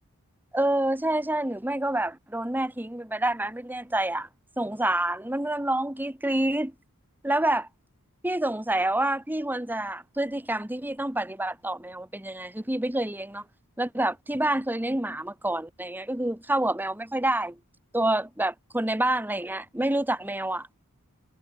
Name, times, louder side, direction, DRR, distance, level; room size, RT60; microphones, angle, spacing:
voice 1, 0.5-4.3 4.6-6.7 7.2-7.7 8.2-13.4 13.8-17.6 17.9-20.7, right 1 dB, 10° right, 1.5 m, -27 dB
head